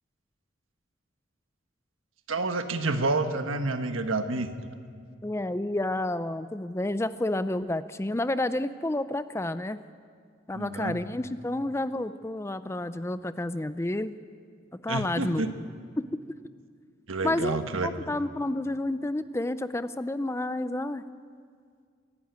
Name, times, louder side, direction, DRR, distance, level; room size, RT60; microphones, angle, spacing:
voice 1, 2.3-4.5 10.5-11.0 14.9-15.5 17.1-17.9, right 3 dB, 85° right, 7 dB, 1.4 m, -29 dB
voice 2, 5.2-9.8 10.5-14.1 14.8-15.4 16.0-16.2 17.2-21.0, left 1 dB, 15° left, 13 dB, 0.4 m, -30 dB
24.0 x 11.5 x 9.5 m, 2.1 s
head